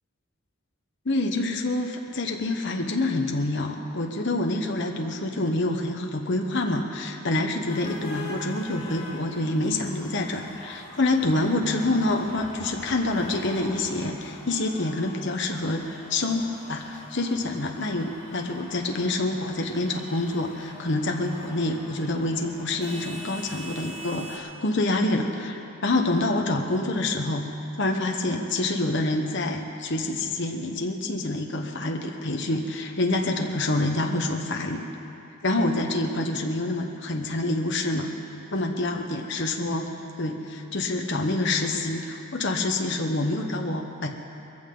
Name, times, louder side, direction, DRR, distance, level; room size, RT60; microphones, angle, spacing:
voice 1, 1.0-27.5 27.8-34.8 35.4-38.1 38.5-39.9 40.2-44.1, left 2 dB, 55° left, 2 dB, 1.1 m, -27 dB
sound 1, 7.7-24.4, left 1 dB, 25° left, 2.7 m, -43 dB
21.5 x 15.0 x 3.9 m, 2.8 s
head